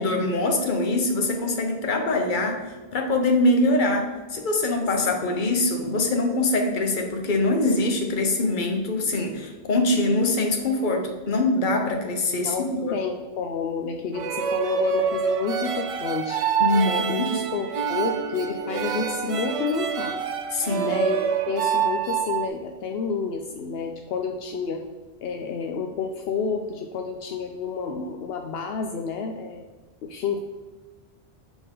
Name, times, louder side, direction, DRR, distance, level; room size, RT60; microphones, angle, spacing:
voice 1, 0.0-13.0 16.6-17.3 20.5-21.0, left 2 dB, 55° left, 4 dB, 1.0 m, -23 dB
voice 2, 12.4-16.4 16.8-20.1 20.8-24.8 25.2-29.6 30.0-30.4, left 5 dB, 75° left, 3 dB, 0.8 m, -30 dB
sound 1, 14.1-22.5, right 7 dB, 55° right, 0.4 m, -26 dB
6.9 x 4.2 x 3.8 m, 1.2 s
omnidirectional pair, 1.1 m